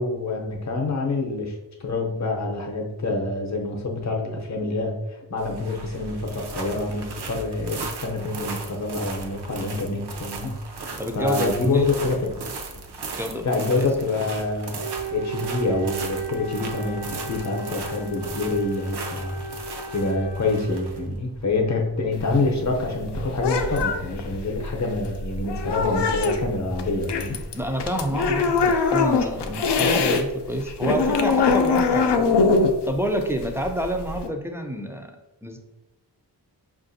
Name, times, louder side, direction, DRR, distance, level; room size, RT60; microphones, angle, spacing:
voice 1, 0.0-1.5 1.8-10.9 11.1-12.3 13.4-19.4 19.9-27.4, left 3 dB, 40° left, 1 dB, 0.7 m, -26 dB
sound 1, 5.4-22.3, right 3 dB, 70° right, 0.6 m, -37 dB
voice 2, 11.0-11.9 13.2-13.9 27.5-32.3 32.8-35.2 35.4-35.6, right 1 dB, 5° right, 3 dB, 0.3 m, -28 dB
Wind instrument woodwind instrument, 14.8-21.2, right 4 dB, 90° right, 1.0 m, -35 dB
sound 2, 22.1-30.2 30.5-34.3, left 4 dB, 75° left, 0.5 m, -23 dB
5.5 x 2.5 x 2.6 m, 1.0 s
wide cardioid pair, 140°, 42 cm